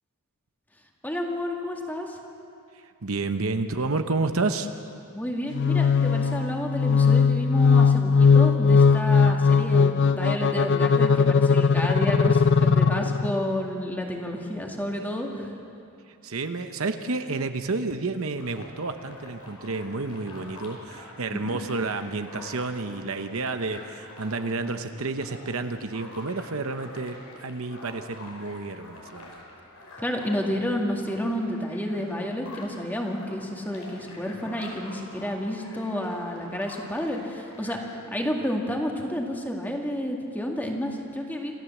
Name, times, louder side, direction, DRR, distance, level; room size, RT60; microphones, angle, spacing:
voice 1, 1.0-2.2 5.1-15.5 21.3-21.6 30.0-37.8 38.1-41.5, left 1 dB, 10° left, 1 dB, 2.1 m, -30 dB
voice 2, 3.0-4.7 16.2-29.4, right 3 dB, 65° right, 8 dB, 0.9 m, -30 dB
black mirror clarinet, 5.5-13.5, left 5 dB, 55° left, 0.5 m, -19 dB
sound 1, 18.4-38.0, left 2 dB, 90° left, 5.4 m, -46 dB
27.5 x 14.5 x 7.2 m, 2.7 s
head